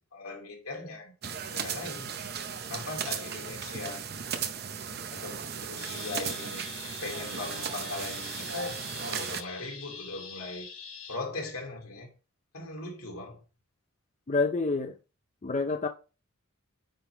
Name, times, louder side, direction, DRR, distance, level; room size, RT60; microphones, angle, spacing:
voice 1, 0.1-1.1 1.5-2.1 2.7-4.0 5.1-6.7 7.0-10.7 11.1-12.1 12.5-13.4, left 3 dB, 90° left, 2.6 m, -39 dB
sound 1, 1.2-9.4, right 7 dB, 45° right, 0.7 m, -36 dB
sound 2, 5.8-11.2, left 6 dB, 65° left, 2.3 m, -44 dB
voice 2, 14.3-14.9 15.4-15.9, left 3 dB, 35° left, 0.5 m, -27 dB
9.3 x 3.6 x 4.5 m
head